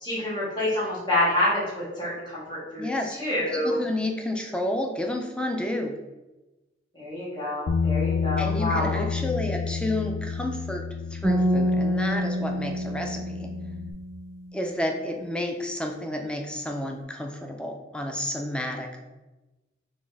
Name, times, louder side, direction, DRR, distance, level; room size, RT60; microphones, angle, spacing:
voice 1, 0.0-2.9 3.2-3.8 6.9-9.0, left 1 dB, 25° left, -8 dB, 1.5 m, -27 dB
voice 2, 2.8-6.0 8.4-13.5 14.5-19.1, left 1 dB, 5° left, 3 dB, 0.3 m, -31 dB
Bass guitar, 7.7-13.9, left 6 dB, 90° left, 0.4 m, -30 dB
sound 1, 11.2-14.4, equal, 10° right, 0.8 m, -27 dB
4.2 x 3.0 x 3.3 m, 1.1 s
head